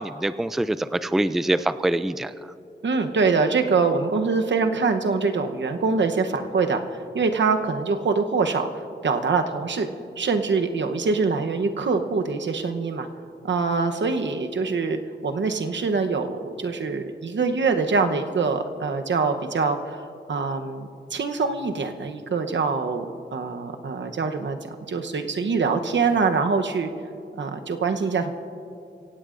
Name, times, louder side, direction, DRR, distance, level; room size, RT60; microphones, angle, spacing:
voice 1, 0.0-2.3, right 1 dB, ahead, 13 dB, 0.3 m, -24 dB
voice 2, 2.8-9.9 10.2-13.1 13.4-23.1 23.3-24.6 24.9-26.9 27.4-28.3, right 4 dB, 80° right, 6 dB, 0.9 m, -24 dB
24.5 x 16.5 x 2.6 m, 2.5 s
wide cardioid pair, 95°, 19 cm